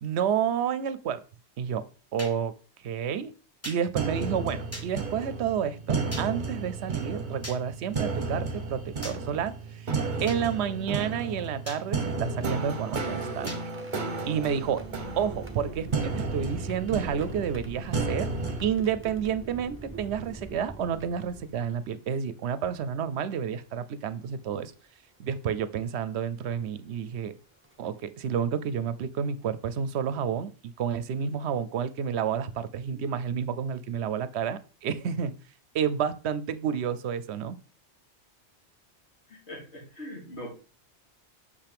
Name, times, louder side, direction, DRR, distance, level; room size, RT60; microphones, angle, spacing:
voice 1, 0.0-1.2 1.6-2.5 2.8-3.3 3.6-13.6 14.3-14.8 15.2-18.3 18.6-24.7 25.2-27.4 27.8-35.4 35.7-37.6, right 8 dB, 80° right, 14 dB, 0.9 m, -30 dB
sound 1, 2.2-2.3 3.6-3.8 4.7-4.9 6.1-6.3 7.4-7.6 9.0-9.2 10.3-10.4 11.7-11.8 13.5-13.6, left 1 dB, 15° left, 1.2 m, -39 dB
sound 2, 4.0-18.7, right 4 dB, 45° right, 1.1 m, -33 dB
sound 3, 13.7-21.9 22.8-22.9 24.3-24.6 25.3-25.5 27.1-27.2 27.6-27.9, right 2 dB, 15° right, 0.7 m, -43 dB
voice 2, 39.3-40.5, equal, 75° left, -2 dB, 2.8 m, -41 dB
6.6 x 5.7 x 3.4 m, 0.36 s
omnidirectional pair, 1.1 m